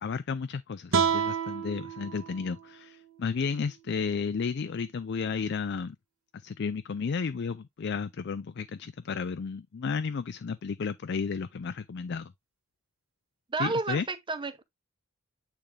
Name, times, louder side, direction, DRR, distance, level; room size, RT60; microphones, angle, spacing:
voice 1, 0.0-6.0 6.3-12.3 13.6-14.1, left 5 dB, 55° left, 0.4 m, -33 dB
sound 1, 0.9-4.1, right 6 dB, 90° right, 1.5 m, -31 dB
voice 2, 13.5-14.6, right 3 dB, 25° right, 0.6 m, -31 dB
8.8 x 3.6 x 3.3 m
head